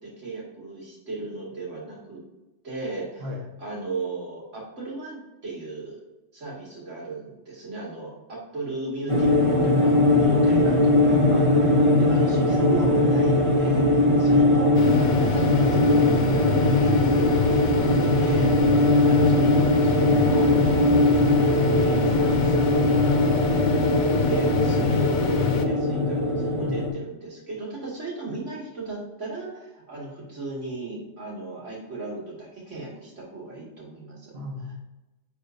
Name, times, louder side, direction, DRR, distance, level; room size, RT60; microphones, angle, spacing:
voice 1, 0.0-2.2 2.6-6.0 6.3-11.5 12.0-18.5 19.0-23.5 24.2-34.3 34.6-34.7, right 3 dB, 90° right, -5 dB, 2.5 m, -36 dB
sound 1, 9.1-26.9, left 1 dB, 30° right, 1.0 m, -20 dB
voice 2, 11.3-12.0 14.2-14.3 26.5-26.9 34.3-34.7, left 1 dB, 60° right, 0 dB, 1.5 m, -35 dB
sound 2, 14.7-25.6, left 8 dB, 60° left, 0.5 m, -28 dB
9.3 x 4.3 x 2.7 m, 1.0 s
omnidirectional pair, 1.2 m